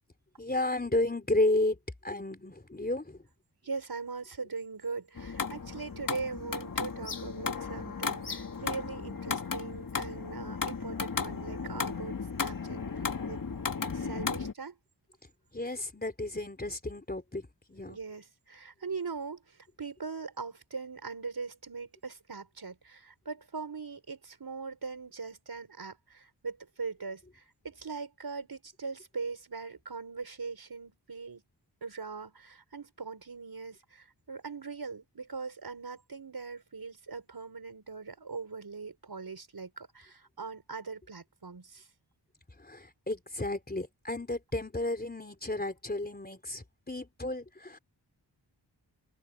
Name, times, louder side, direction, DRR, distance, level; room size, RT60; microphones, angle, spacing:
voice 1, 0.4-3.2 15.5-18.0 42.6-47.8, left 2 dB, 20° left, 3.9 m, -32 dB
voice 2, 3.6-12.8 13.3-13.4 13.9-14.7 17.9-19.4 19.8-31.4 31.8-41.9, right 4 dB, 60° right, 5.5 m, -41 dB
sound 1, 5.2-14.5, left 5 dB, 50° left, 1.9 m, -35 dB
open air
wide cardioid pair, 110°, 41 cm